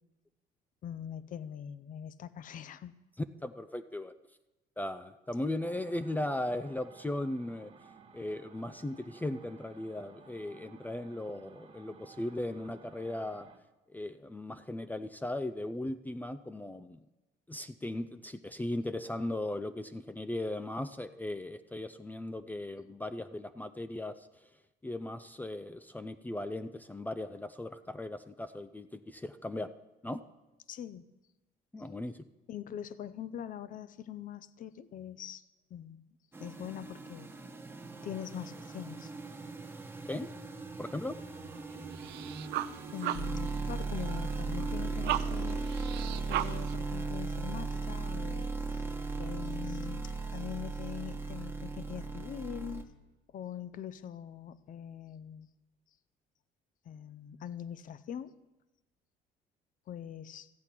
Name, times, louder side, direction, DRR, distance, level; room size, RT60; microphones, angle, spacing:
voice 1, 0.8-2.9 30.7-31.1 32.5-35.4 35.7-36.0 36.4-37.3 38.0-39.1 42.9-45.7 46.3-48.8 49.2-52.8 53.3-55.5 56.9-58.3 59.9-60.5, left 9 dB, 50° left, 15 dB, 0.6 m, -43 dB
voice 2, 3.4-4.1 4.8-7.7 8.1-13.5 13.9-17.0 17.5-24.3 24.8-29.7 30.0-30.2 31.7-32.2 40.1-40.3 40.8-41.1, left 1 dB, 10° left, 11 dB, 0.4 m, -37 dB
sound 1, 5.6-13.6, right 5 dB, 35° right, 1.0 m, -57 dB
sound 2, 36.3-52.8, right 3 dB, 15° right, 1.1 m, -37 dB
sound 3, 41.2-46.8, right 14 dB, 80° right, 0.5 m, -38 dB
14.0 x 8.2 x 5.9 m, 1.0 s
cardioid pair, 110°, 17 cm